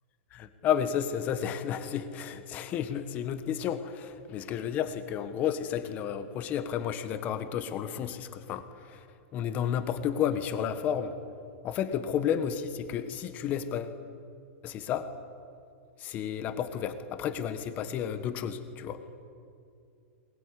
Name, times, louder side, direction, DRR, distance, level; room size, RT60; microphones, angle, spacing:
voice 1, 0.3-9.0 9.3-11.2 11.6-14.0 14.6-15.1 16.0-19.0, left 9 dB, 20° left, 10 dB, 1.4 m, -32 dB
21.5 x 21.5 x 10.0 m, 2.5 s
supercardioid pair, 170°, 7 cm